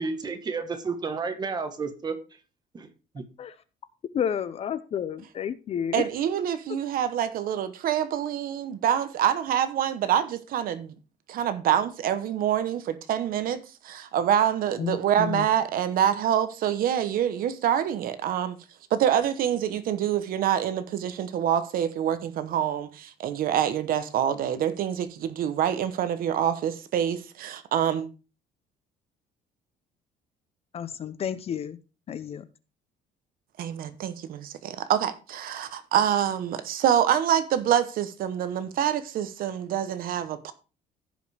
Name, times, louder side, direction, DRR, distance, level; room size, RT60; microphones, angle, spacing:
voice 1, 0.0-2.2 2.7-2.9 3.1-3.2, right 4 dB, 25° right, 1.3 m, -31 dB
voice 2, 4.1-6.1 6.7-6.8 14.8-15.5 30.7-31.8 32.1-32.5, left 8 dB, 35° left, 0.6 m, -31 dB
voice 3, 5.9-10.9 11.3-18.6 18.9-28.1 33.6-40.5, right 10 dB, 60° right, 0.9 m, -26 dB
15.5 x 5.3 x 3.3 m
cardioid pair, 160°, 17 cm